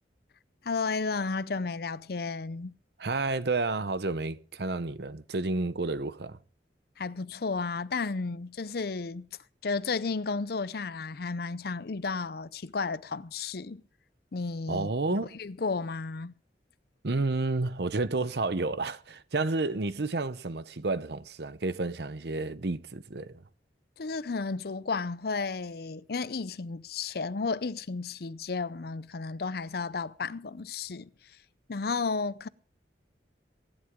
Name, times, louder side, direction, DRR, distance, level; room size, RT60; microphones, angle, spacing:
voice 1, 0.6-2.8 7.0-9.3 9.6-13.8 14.3-16.3 24.0-31.4 31.7-32.5, left 4 dB, 60° left, 0.6 m, -33 dB
voice 2, 3.0-6.4 14.7-15.3 17.0-23.4, right 3 dB, 65° right, 0.9 m, -30 dB
23.0 x 11.5 x 3.7 m
head